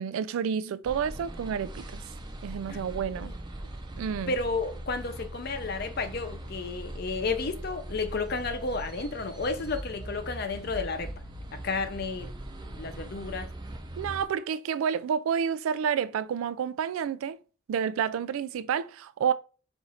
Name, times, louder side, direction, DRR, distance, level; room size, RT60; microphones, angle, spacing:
voice 1, 0.0-1.9 2.4-3.3 4.0-4.3 14.0-17.4 17.7-19.3, right 7 dB, 90° right, 0.3 m, -29 dB
sound 1, 0.8-14.3, right 1 dB, 20° right, 0.5 m, -40 dB
voice 2, 4.3-11.1 11.6-12.3 12.8-13.5, left 3 dB, 50° left, 0.6 m, -32 dB
4.4 x 2.4 x 4.1 m
head